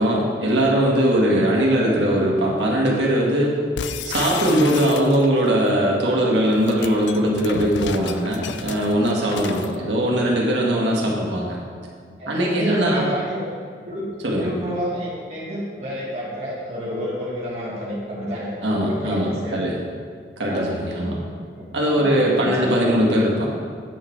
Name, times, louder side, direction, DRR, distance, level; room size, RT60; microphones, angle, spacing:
voice 1, 0.0-3.6 4.0-11.6 12.3-13.1 14.2-14.5 18.6-19.8 20.4-21.2 21.7-23.5, equal, 85° right, -3 dB, 1.9 m, -20 dB
sound 1, 3.8-5.5 6.5-9.8, left 6 dB, 85° left, 0.4 m, -32 dB
voice 2, 12.2-13.5 13.8-18.5 18.8-19.6 20.5-21.2 21.6-21.7 22.0-23.0, equal, 35° right, -7 dB, 2.0 m, -30 dB
9.1 x 6.4 x 4.6 m, 2.1 s
head